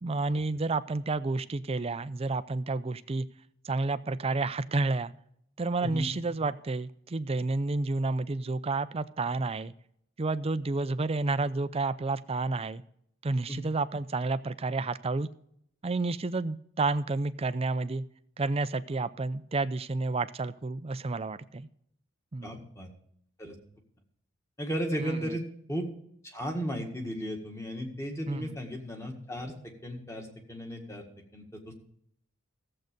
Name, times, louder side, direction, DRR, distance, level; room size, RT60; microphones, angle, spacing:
voice 1, 0.0-3.3 3.6-5.1 5.6-9.7 10.2-12.8 13.2-15.3 15.8-18.0 18.4-21.7 22.3-22.6 25.0-25.4 28.3-28.5, right 3 dB, 30° right, 13 dB, 0.5 m, -30 dB
voice 2, 22.4-22.9 23.4-23.6 24.6-25.4 25.7-25.9 26.3-29.5 29.8-31.0 31.3-31.7, equal, 15° left, 2 dB, 1.8 m, -35 dB
14.5 x 7.7 x 5.3 m, 0.70 s
head